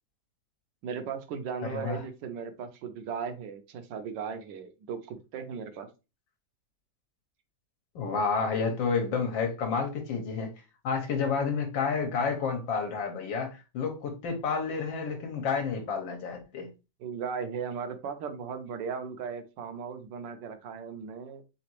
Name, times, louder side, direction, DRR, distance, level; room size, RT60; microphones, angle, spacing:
voice 1, 0.8-5.9 17.0-21.4, right 6 dB, 70° right, 1.3 m, -37 dB
voice 2, 1.6-2.0 7.9-10.5 10.8-16.7, left 5 dB, 75° left, 1.6 m, -30 dB
4.0 x 3.8 x 3.0 m
omnidirectional pair, 2.1 m